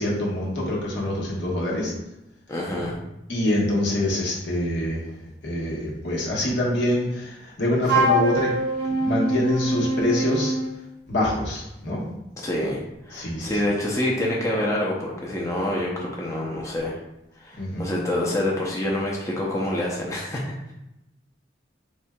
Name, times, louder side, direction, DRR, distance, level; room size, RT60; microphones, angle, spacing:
voice 1, 0.0-1.9 3.3-5.0 5.4-8.5 9.0-10.5 11.1-12.0 13.1-13.6 17.6-17.9, left 1 dB, 75° left, -4 dB, 1.2 m, -25 dB
voice 2, 2.5-3.0 12.4-12.8 13.1-17.0 17.4-20.4, left 1 dB, 15° left, -3 dB, 0.6 m, -26 dB
Wind instrument woodwind instrument, 7.8-10.7, right 1 dB, 55° right, 0.9 m, -23 dB
4.3 x 3.6 x 2.2 m, 0.89 s
head